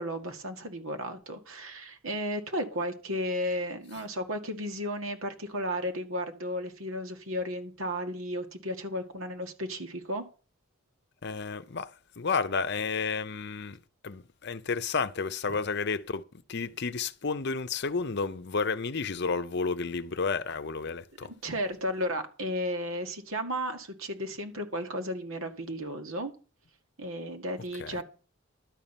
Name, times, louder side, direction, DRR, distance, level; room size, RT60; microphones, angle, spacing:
voice 1, 0.0-10.2 21.2-26.3 27.0-28.0, equal, 75° right, 1.9 m, -34 dB
voice 2, 11.2-11.9 12.2-13.8 14.0-16.2 16.5-21.3 27.8-28.0, left 4 dB, 50° left, 0.7 m, -31 dB
12.0 x 5.5 x 9.0 m
head